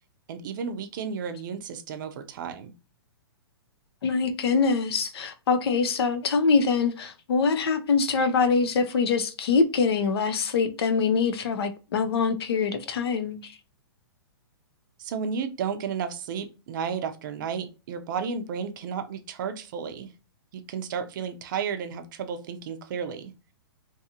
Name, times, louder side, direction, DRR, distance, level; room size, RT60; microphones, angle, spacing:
voice 1, 0.3-2.7 15.0-20.1 20.5-23.3, right 6 dB, 50° right, 0.5 m, -33 dB
voice 2, 4.0-13.5, left 5 dB, 65° left, 0.5 m, -24 dB
2.6 x 2.4 x 2.8 m
hypercardioid pair, 145°, 14 cm